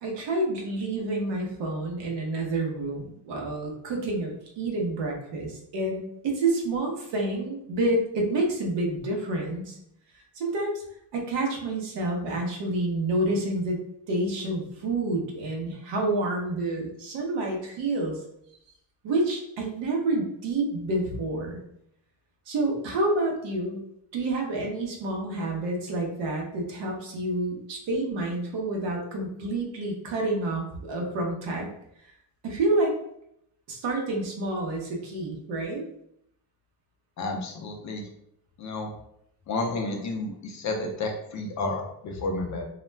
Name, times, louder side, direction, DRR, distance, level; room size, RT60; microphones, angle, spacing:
voice 1, 0.0-9.8 10.3-10.8 11.1-13.8 14.1-18.2 19.0-21.6 22.5-23.8 24.1-31.7 32.4-32.9 33.7-35.8, right 2 dB, 70° right, 0 dB, 0.9 m, -28 dB
voice 2, 37.2-38.0 38.6-38.9 39.5-42.7, left 2 dB, 45° left, 3 dB, 0.4 m, -31 dB
2.3 x 2.1 x 3.2 m, 0.75 s
cardioid pair, 135°, 44 cm